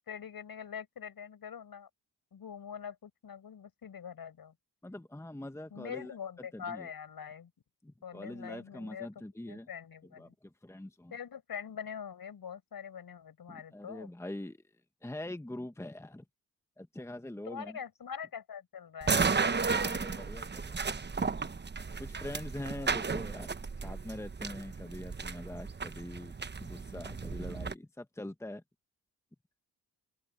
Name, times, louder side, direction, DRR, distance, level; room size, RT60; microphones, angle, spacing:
voice 1, 0.1-1.9 2.3-4.5 5.7-7.5 8.0-9.1 9.5-10.3 11.1-14.1 17.5-19.2 22.7-23.3, left 7 dB, 60° left, 5.6 m, -44 dB
voice 2, 4.8-6.1 6.5-6.9 7.8-9.7 10.2-11.1 13.5-14.6 15.0-16.2 16.8-17.8 19.7-20.8 22.0-28.6, left 1 dB, 5° left, 1.4 m, -43 dB
sound 1, 19.0-27.7, right 4 dB, 25° right, 1.1 m, -34 dB
open air
cardioid pair, 65°, 40 cm